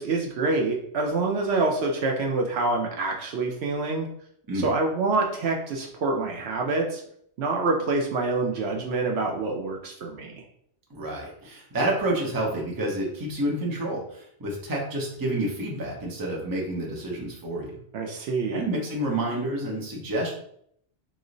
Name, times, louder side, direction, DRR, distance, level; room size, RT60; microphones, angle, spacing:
voice 1, 0.0-4.1 4.5-7.0 7.4-10.4 17.9-18.6, right 3 dB, 70° right, 1 dB, 0.8 m, -26 dB
voice 2, 10.9-17.8 18.5-20.3, right 1 dB, 25° right, -2 dB, 0.6 m, -29 dB
3.0 x 2.0 x 3.8 m, 0.68 s
omnidirectional pair, 1.2 m